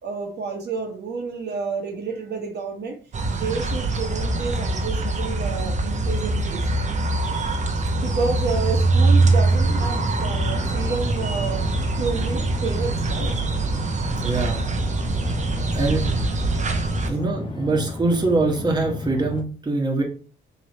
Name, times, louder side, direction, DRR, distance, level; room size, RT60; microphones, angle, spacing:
voice 1, 0.0-3.0 3.3-6.7 8.0-11.7 12.0-13.3 15.5-16.0, right 4 dB, 55° right, 1 dB, 1.1 m, -30 dB
sound 1, 3.1-17.1, right 2 dB, 35° right, 0.7 m, -23 dB
sound 2, 9.5-19.4, left 2 dB, 25° left, 0.6 m, -34 dB
voice 2, 14.2-14.6 15.7-16.1 16.4-16.5 17.1-20.0, right 3 dB, 20° right, 1 dB, 1.1 m, -23 dB
3.2 x 3.0 x 4.0 m, 0.38 s
cardioid pair, 90°, 20 cm